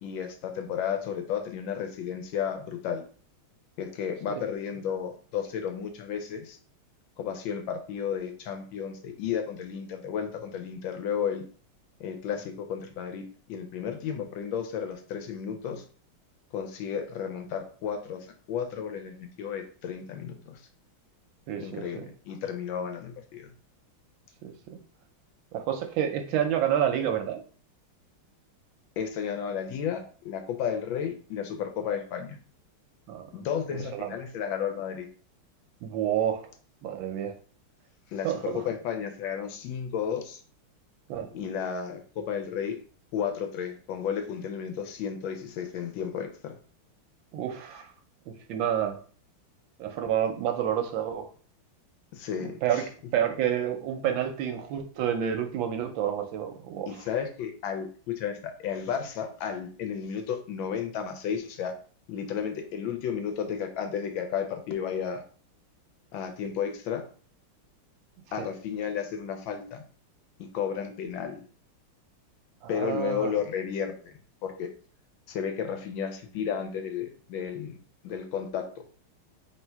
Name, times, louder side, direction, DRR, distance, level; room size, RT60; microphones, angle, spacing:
voice 1, 0.0-3.0 3.8-6.6 7.2-11.4 12.0-15.8 16.5-20.6 21.6-23.5 29.0-32.4 33.3-35.1 38.1-40.4 41.3-42.8 43.1-46.5 52.1-52.8 56.9-61.7 62.1-65.2 66.1-67.0 68.3-69.8 70.4-71.4 72.7-74.1 74.4-74.7 75.3-77.8 78.0-78.7, left 7 dB, 75° left, 6 dB, 1.3 m, -33 dB
voice 2, 21.5-22.1 24.4-24.5 25.5-27.4 33.1-33.3 33.7-34.1 35.8-36.4 36.8-37.4 38.2-38.4 41.1-41.3 47.3-47.9 48.3-49.0 49.8-51.3 52.6-52.8 53.1-56.9 68.4-68.5 72.6-73.3, right 9 dB, 75° right, 6 dB, 1.2 m, -29 dB
3.3 x 2.7 x 4.5 m, 0.42 s
omnidirectional pair, 2.3 m